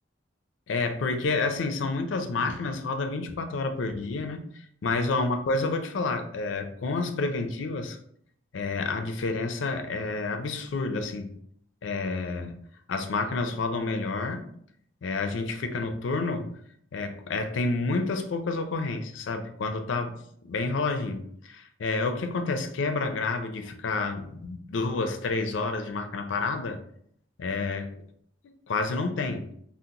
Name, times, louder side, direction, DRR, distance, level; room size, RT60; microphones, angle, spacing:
voice 1, 0.7-4.4 4.8-8.0 8.5-11.3 11.8-12.5 12.9-14.4 15.0-16.5 16.9-26.8 27.4-27.9 28.7-29.5, left 3 dB, 75° left, 7 dB, 0.4 m, -29 dB
2.8 x 2.0 x 3.7 m, 0.67 s
head